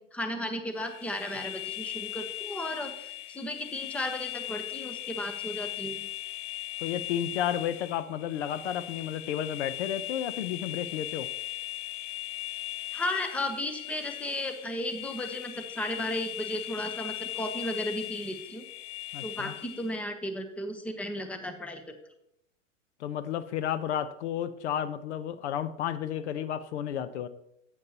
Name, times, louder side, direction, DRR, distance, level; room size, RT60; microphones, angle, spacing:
voice 1, 0.0-6.0 12.9-18.6 19.2-21.8, left 1 dB, 5° left, 7 dB, 0.9 m, -34 dB
sound 1, 0.8-20.0, left 14 dB, 30° left, 0.5 m, -39 dB
voice 2, 6.8-11.3 19.1-19.5 23.0-27.3, left 10 dB, 60° left, 13 dB, 0.8 m, -32 dB
11.5 x 8.5 x 2.9 m, 0.77 s
hypercardioid pair, 115°, 39 cm